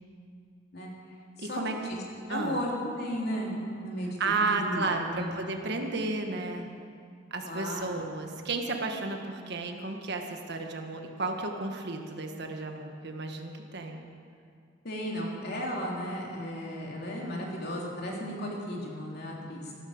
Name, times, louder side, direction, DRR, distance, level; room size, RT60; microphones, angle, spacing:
voice 1, 1.4-1.8 2.3-2.6 4.2-6.7 7.3-14.1, right 3 dB, 60° right, 4 dB, 1.6 m, -33 dB
voice 2, 2.3-4.2 4.5-5.3 7.4-8.0 14.8-19.7, equal, 60° left, -2 dB, 3.1 m, -34 dB
15.0 x 13.0 x 6.5 m, 2.3 s
head